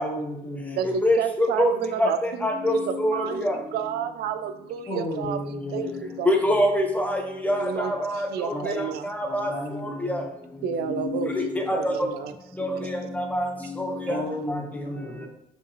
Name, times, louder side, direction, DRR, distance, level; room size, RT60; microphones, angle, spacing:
voice 1, 0.0-1.0 4.9-6.0 8.5-8.7 9.2-10.3 10.8-10.9 14.1-15.3, equal, 45° left, -5 dB, 2.5 m, -33 dB
voice 2, 0.8-6.3 7.6-9.1 10.6-11.4 11.7-12.3 12.6-12.9, right 8 dB, 70° right, 11 dB, 0.5 m, -31 dB
voice 3, 2.4-3.5 6.3-8.2 8.7-8.8 9.2-9.5 11.1-11.8 12.6-12.7 13.3-13.5 13.8-14.2, left 1 dB, 10° left, 2 dB, 1.1 m, -24 dB
6.4 x 5.2 x 3.1 m, 0.76 s
cardioid pair, 110°, 17 cm